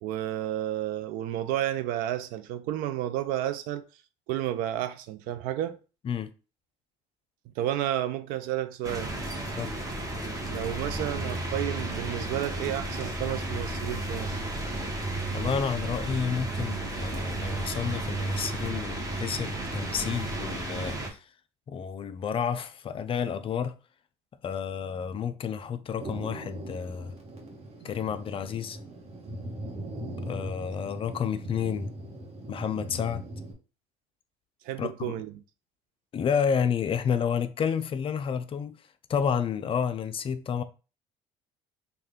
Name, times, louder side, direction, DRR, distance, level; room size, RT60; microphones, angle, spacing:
voice 1, 0.0-3.8 4.3-5.8 7.6-9.1 10.5-14.4 34.6-35.3, right 12 dB, 70° right, 0.4 m, -31 dB
sound 1, 8.8-21.1, right 2 dB, 20° right, 1.0 m, -33 dB
voice 2, 15.3-21.2 21.7-23.7 24.4-27.2 27.8-28.8 30.2-31.9 32.5-33.2 34.8-35.1 36.1-38.7 39.1-40.6, left 7 dB, 35° left, 0.4 m, -30 dB
Thunder, 26.0-33.5, right 1 dB, 45° right, 1.1 m, -40 dB
3.2 x 2.3 x 3.5 m
hypercardioid pair, 75°, 15 cm